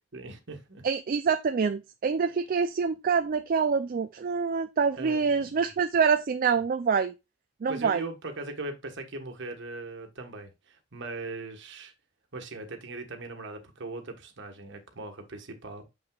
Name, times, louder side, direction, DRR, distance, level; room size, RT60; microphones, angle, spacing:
voice 1, 0.1-0.8 5.0-5.7 7.7-11.9 12.3-15.8, right 2 dB, 60° right, 1.4 m, -40 dB
voice 2, 0.8-7.1 7.6-8.0, right 5 dB, 45° right, 0.4 m, -26 dB
6.8 x 5.9 x 2.3 m
head